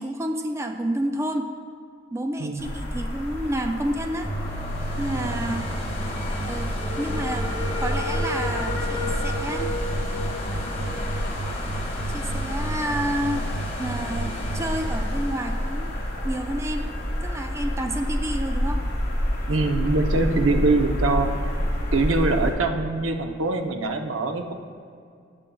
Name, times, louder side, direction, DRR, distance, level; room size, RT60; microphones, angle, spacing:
voice 1, 0.0-1.5 2.1-4.3 5.0-5.7 6.4-7.5 7.8-9.8 12.1-13.4 13.8-15.9 16.2-16.9 17.2-18.8, right 1 dB, 15° right, 4 dB, 0.4 m, -29 dB
voice 2, 2.4-2.7 5.1-5.4 19.5-21.3 21.9-24.5, right 3 dB, 90° right, 5 dB, 0.8 m, -23 dB
sound 1, 2.6-22.5, left 1 dB, 55° left, 2.3 m, -29 dB
sound 2, 4.2-17.9 18.4-18.5, right 1 dB, 35° left, 1.6 m, -33 dB
16.5 x 7.5 x 2.3 m, 2.3 s
head